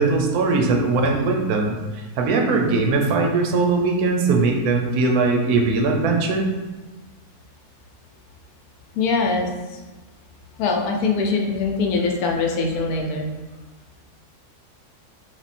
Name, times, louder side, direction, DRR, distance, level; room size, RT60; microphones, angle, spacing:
voice 1, 0.0-6.5, right 3 dB, 80° right, 2 dB, 1.1 m, -20 dB
voice 2, 8.9-9.8 10.6-13.3, left 4 dB, 80° left, 2 dB, 1.1 m, -23 dB
3.6 x 2.7 x 4.1 m, 1.2 s
omnidirectional pair, 1.6 m